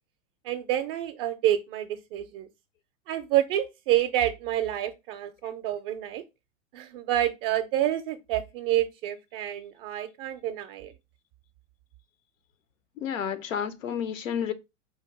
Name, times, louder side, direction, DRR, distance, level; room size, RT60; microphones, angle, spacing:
voice 1, 0.4-2.5 3.1-6.2 6.7-10.9, right 12 dB, 45° right, 0.5 m, -28 dB
voice 2, 13.0-14.5, left 8 dB, 75° left, 0.8 m, -30 dB
4.5 x 2.5 x 3.5 m
hypercardioid pair, 100°, 40 cm